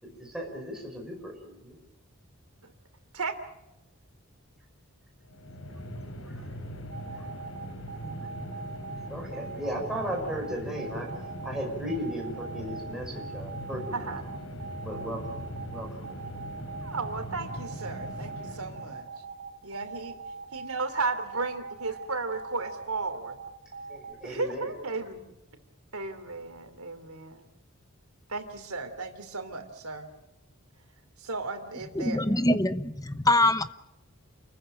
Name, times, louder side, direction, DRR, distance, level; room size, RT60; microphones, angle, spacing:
voice 1, 0.0-1.8 5.7-5.8 6.2-6.5 7.1-7.3 9.1-11.1 11.4-14.1 14.8-15.4 15.7-16.1 23.9-24.8, equal, ahead, -1 dB, 5.6 m, -36 dB
sound 1, 5.2-19.1, equal, 65° left, 3.6 m, -40 dB
sound 2, 6.9-24.1, right 4 dB, 40° right, 2.0 m, -41 dB
voice 2, 16.8-19.1 19.6-20.2 20.5-23.4 24.2-25.3 25.9-27.5 28.3-30.1 31.2-32.2, right 3 dB, 80° right, 8 dB, 3.2 m, -34 dB
voice 3, 31.9-33.7, left 1 dB, 15° left, 12 dB, 0.8 m, -24 dB
29.0 x 15.0 x 9.0 m, 0.95 s
head